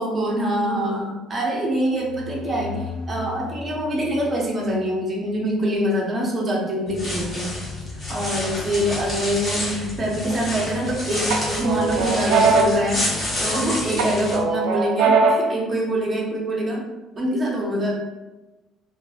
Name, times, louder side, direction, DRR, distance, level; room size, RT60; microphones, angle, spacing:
voice 1, 0.0-7.5 8.1-13.0 13.4-16.8 17.2-17.9, equal, 25° right, -2 dB, 0.5 m, -24 dB
sound 1, 1.7-5.3, left 2 dB, 75° left, 0.4 m, -37 dB
sound 2, 6.9-14.4, left 1 dB, 30° left, 0.9 m, -29 dB
sound 3, 10.3-10.9 11.3-13.6 14.0-15.6, right 4 dB, 90° right, 0.3 m, -21 dB
2.5 x 2.4 x 2.3 m, 1.1 s
cardioid pair, 145°, 0 cm